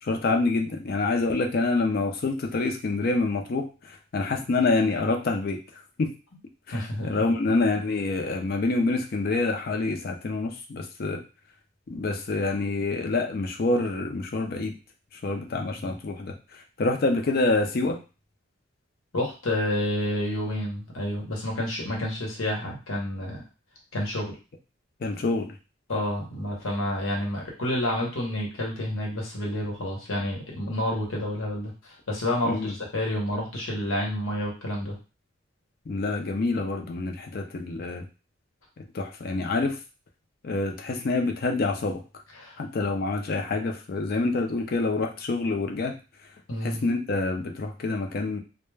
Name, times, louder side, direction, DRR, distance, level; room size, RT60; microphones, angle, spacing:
voice 1, 0.0-5.6 6.0-6.1 6.7-11.2 11.9-14.7 15.2-16.3 16.8-18.0 25.0-25.5 32.4-32.7 35.9-38.0 38.8-39.8 40.4-42.0 42.6-46.0 46.6-48.4, left 3 dB, 50° left, 3 dB, 0.4 m, -27 dB
voice 2, 6.7-7.1 15.5-15.9 19.1-23.4 23.9-24.3 25.9-34.9 42.4-42.6 46.5-46.8, left 1 dB, 85° left, -2 dB, 0.9 m, -29 dB
2.2 x 2.1 x 3.2 m, 0.32 s
head